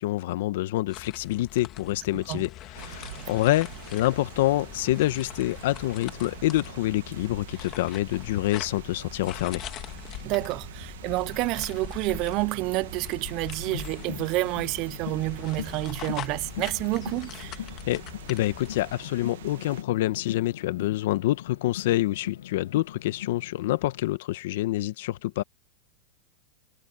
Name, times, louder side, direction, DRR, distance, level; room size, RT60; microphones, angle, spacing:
voice 1, 0.0-9.6 17.9-18.0 18.3-25.4, left 16 dB, 60° left, 0.9 m, -27 dB
sound 1, 0.9-19.0, left 13 dB, 30° left, 1.8 m, -42 dB
sound 2, 2.7-19.8, right 12 dB, 80° right, 1.4 m, -45 dB
voice 2, 10.2-17.6, right 22 dB, 40° right, 0.3 m, -29 dB
sound 3, 13.6-24.1, left 11 dB, 90° left, 0.7 m, -41 dB
supercardioid pair, 155°, 0 cm